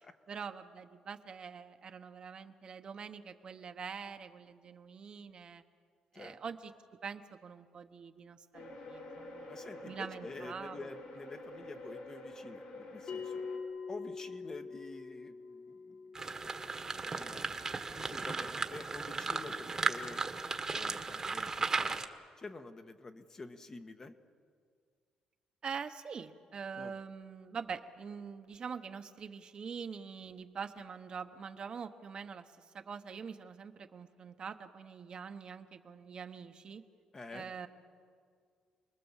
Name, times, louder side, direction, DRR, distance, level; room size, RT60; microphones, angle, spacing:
voice 1, 0.3-5.6 6.1-6.7 7.0-9.5 9.8-10.9 25.6-32.4 32.7-36.8 37.3-37.7, right 6 dB, 45° right, 7 dB, 1.2 m, -44 dB
sound 1, 8.5-13.6, left 1 dB, 90° left, 4.1 m, -48 dB
voice 2, 9.5-13.4 13.9-16.0 16.4-16.5 17.1-17.4 17.9-20.2 20.7-22.0 22.4-24.2 26.7-27.0 37.1-37.5, left 3 dB, 30° left, 7 dB, 1.4 m, -48 dB
Bell, 13.1-18.1, left 5 dB, 60° left, 5.4 m, -45 dB
sound 2, 16.2-22.1, right 4 dB, 25° right, 1.4 m, -36 dB
28.0 x 21.0 x 7.3 m, 2.1 s
cardioid pair, 125°, 2 cm